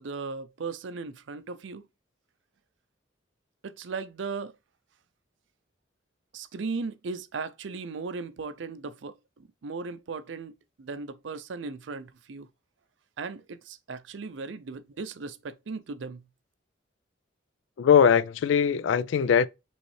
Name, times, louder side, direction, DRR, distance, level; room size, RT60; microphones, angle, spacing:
voice 1, 0.0-1.8 3.6-4.5 6.3-12.5 13.2-16.3, right 4 dB, 80° right, 0.5 m, -37 dB
voice 2, 17.8-19.5, left 7 dB, 85° left, 0.3 m, -21 dB
5.2 x 3.1 x 3.2 m
head